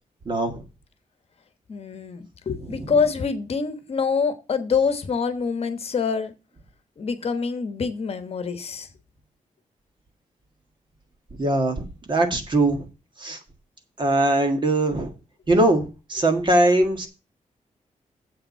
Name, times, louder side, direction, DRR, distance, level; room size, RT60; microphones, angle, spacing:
voice 1, 0.3-0.6 2.8-2.9 11.4-12.8 13.2-13.4 14.0-15.1 15.5-17.1, right 1 dB, 35° right, 5 dB, 1.8 m, -21 dB
voice 2, 1.7-6.3 7.0-8.9, left 5 dB, 50° left, 10 dB, 1.2 m, -25 dB
7.9 x 6.9 x 5.6 m, 0.29 s
wide cardioid pair, 175°, 14 cm